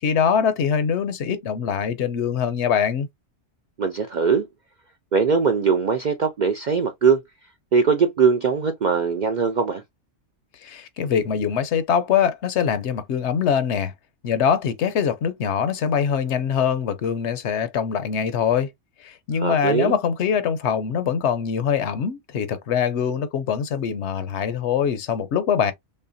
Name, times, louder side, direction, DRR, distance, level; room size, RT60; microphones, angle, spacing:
voice 1, 0.0-3.1 10.6-13.9 14.2-18.7 19.0-25.7, left 7 dB, 70° left, 0.9 m, -23 dB
voice 2, 3.8-4.5 5.1-7.2 7.7-9.8 19.4-19.9, right 5 dB, 60° right, 0.5 m, -21 dB
5.4 x 2.1 x 2.5 m
omnidirectional pair, 1.3 m